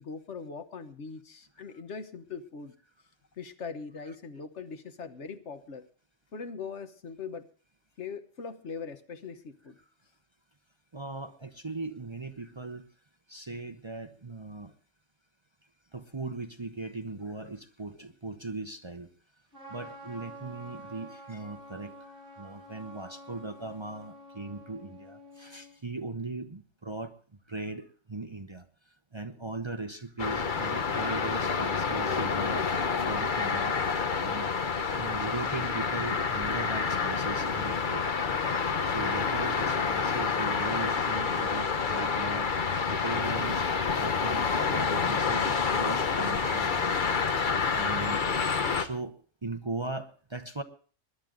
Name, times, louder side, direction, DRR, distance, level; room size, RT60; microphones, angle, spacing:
voice 1, 0.0-2.7 3.4-5.8 6.3-7.4 8.0-9.8, left 5 dB, 70° left, 9 dB, 1.4 m, -41 dB
voice 2, 10.9-12.9 13.3-14.7 15.9-19.1 19.7-21.9 22.4-27.1 27.5-28.6 29.1-33.8 34.2-34.5 35.0-38.1 38.9-42.5 42.9-43.7 44.0-47.0 47.3-48.2 48.7-50.6, right 3 dB, 25° right, 7 dB, 0.7 m, -38 dB
Trumpet, 19.5-25.7, equal, 50° right, 7.9 m, -48 dB
sound 1, 30.2-48.9, left 5 dB, 45° left, 1.1 m, -28 dB
21.0 x 11.0 x 3.8 m, 0.40 s
omnidirectional pair, 1.2 m